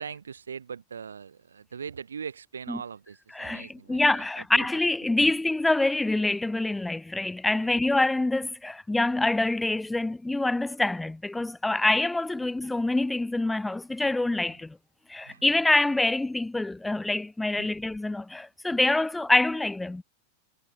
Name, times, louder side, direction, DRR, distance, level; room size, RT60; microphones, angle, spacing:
voice 1, 0.0-4.7 14.3-14.6 15.3-15.4 17.6-17.7, right 6 dB, 70° right, 6.0 m, -41 dB
voice 2, 3.3-14.8 15.1-20.0, left 2 dB, 5° left, 0.9 m, -26 dB
figure-of-eight pair, 90°, 0 cm